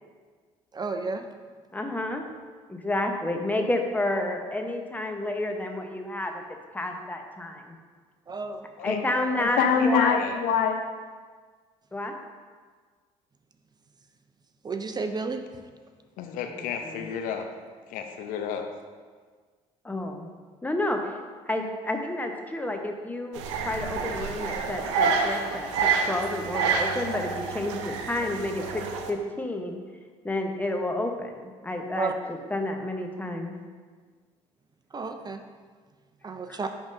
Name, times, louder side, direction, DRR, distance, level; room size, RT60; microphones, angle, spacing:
voice 1, 0.7-1.3 8.3-8.7 14.6-15.4 19.9-20.0 31.9-32.1 34.9-35.4 36.2-36.7, right 4 dB, 30° right, 7 dB, 0.5 m, -31 dB
voice 2, 1.7-2.2 2.7-6.4 6.7-7.6 8.8-10.2 11.9-12.1 16.5-17.1 19.8-20.3 20.6-21.0 21.5-29.8 30.2-33.5 36.5-36.6, left 1 dB, 10° left, 3 dB, 0.9 m, -30 dB
voice 3, 9.4-10.8 16.2-17.5 17.9-18.7, left 6 dB, 70° left, 5 dB, 0.6 m, -26 dB
sound 1, 23.4-29.1, right 5 dB, 85° right, 0.5 m, -28 dB
10.5 x 3.6 x 2.6 m, 1.6 s
hypercardioid pair, 60°, 15 cm